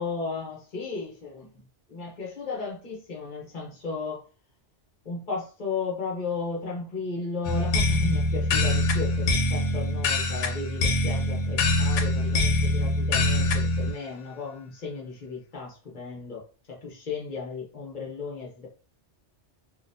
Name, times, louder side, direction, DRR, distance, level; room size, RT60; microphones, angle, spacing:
voice 1, 0.0-1.6 1.9-4.2 5.0-16.4 16.7-18.7, left 4 dB, 40° left, 1.0 m, -35 dB
sound 1, 7.4-13.9, left 2 dB, 85° left, 1.0 m, -24 dB
3.8 x 2.4 x 2.6 m
omnidirectional pair, 1.2 m